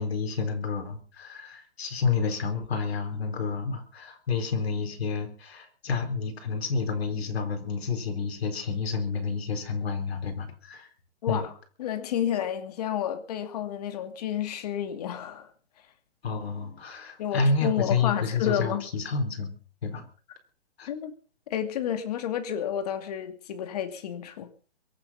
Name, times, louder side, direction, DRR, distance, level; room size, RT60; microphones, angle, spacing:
voice 1, 0.0-10.9 11.3-11.5 16.2-19.5 19.8-20.1 20.8-20.9, left 4 dB, 65° left, 4.5 m, -29 dB
voice 2, 11.2-11.5 11.8-15.5 17.2-18.9 20.9-21.2 21.5-24.5, left 9 dB, 35° left, 2.4 m, -30 dB
24.0 x 8.7 x 5.8 m
hypercardioid pair, 170°, 34 cm